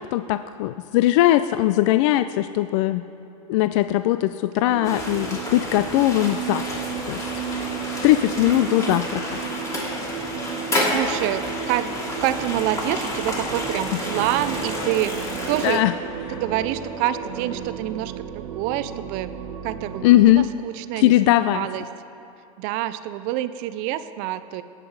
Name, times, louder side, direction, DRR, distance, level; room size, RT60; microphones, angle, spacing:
voice 1, 0.0-3.0 3.5-6.7 7.1-7.7 8.0-9.4 13.7-13.8 15.6-15.9 20.0-20.5 21.0-21.7, left 15 dB, 60° left, 12 dB, 0.4 m, -20 dB
sound 1, 4.7-20.2, right 9 dB, 70° right, 0.9 m, -34 dB
sound 2, 4.8-15.8, left 1 dB, 20° left, 2.5 m, -30 dB
sound 3, 6.5-17.6, equal, 35° left, 3.6 m, -39 dB
voice 2, 8.6-9.0 10.7-11.9 12.2-15.8 16.3-19.3 19.6-21.8 22.6-24.6, right 13 dB, 50° right, 13 dB, 0.5 m, -27 dB
16.5 x 9.1 x 4.8 m, 2.7 s
supercardioid pair, 130°, 18 cm